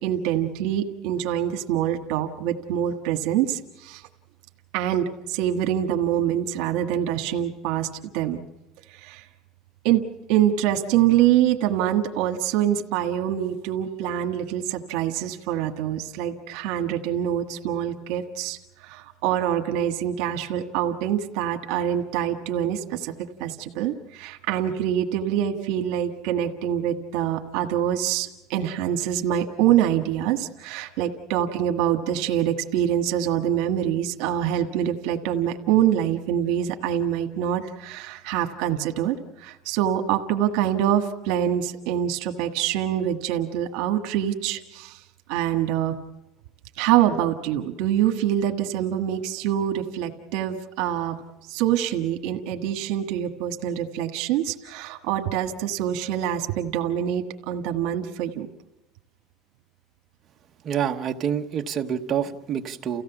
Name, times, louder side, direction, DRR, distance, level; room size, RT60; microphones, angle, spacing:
voice 1, 0.0-4.0 4.7-8.4 8.9-9.2 9.8-10.0 10.3-23.1 23.4-45.0 45.3-46.0 46.8-51.2 51.5-58.5, right 10 dB, 70° right, 5 dB, 1.6 m, -25 dB
voice 2, 60.6-63.0, right 8 dB, 30° right, 4 dB, 1.1 m, -27 dB
30.0 x 16.0 x 7.1 m, 0.96 s
cardioid pair, 170°, 0 cm